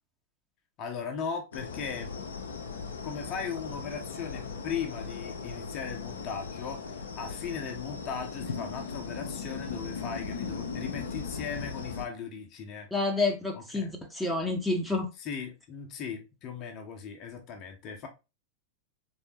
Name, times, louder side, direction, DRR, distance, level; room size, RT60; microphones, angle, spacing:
voice 1, 0.8-2.1 3.0-12.9 13.5-13.9 15.2-18.1, left 6 dB, 35° left, 0.7 m, -38 dB
sound 1, 1.5-12.1, left 5 dB, 70° left, 0.6 m, -38 dB
voice 2, 12.9-15.1, left 3 dB, 5° left, 0.8 m, -29 dB
3.5 x 3.1 x 2.8 m
figure-of-eight pair, 90°, 0 cm